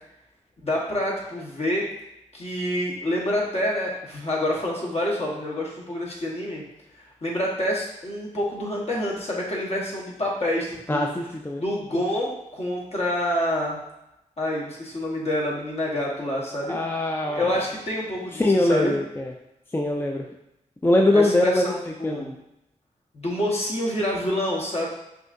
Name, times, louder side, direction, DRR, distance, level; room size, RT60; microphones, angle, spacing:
voice 1, 0.6-1.9 2.3-6.6 7.2-11.1 11.6-13.8 14.4-16.8 17.3-19.0 21.1-22.4 23.1-24.9, left 1 dB, 50° left, -3 dB, 1.3 m, -27 dB
voice 2, 10.9-11.6 16.7-17.6 18.3-19.3 19.7-20.3 20.8-21.7 22.0-22.2, left 1 dB, 15° left, 1 dB, 0.4 m, -22 dB
5.9 x 2.7 x 2.6 m, 0.88 s
cardioid pair, 65°, 14 cm